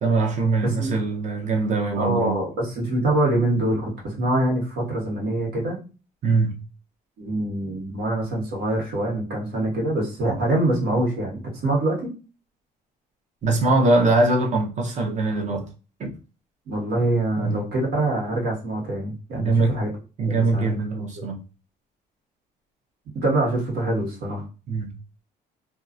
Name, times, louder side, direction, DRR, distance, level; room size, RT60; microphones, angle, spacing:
voice 1, 0.0-2.4 6.2-6.6 13.4-15.6 16.0-16.1 17.4-17.6 19.4-19.8 20.2-21.4 24.7-24.9, right 3 dB, 45° right, 0.8 m, -22 dB
voice 2, 0.6-0.9 1.9-5.8 7.2-12.1 16.7-19.9 20.2-20.8 21.2-21.3 23.1-24.4, right 1 dB, 75° right, 1.5 m, -25 dB
2.7 x 2.4 x 2.5 m
cardioid pair, 110°, 17 cm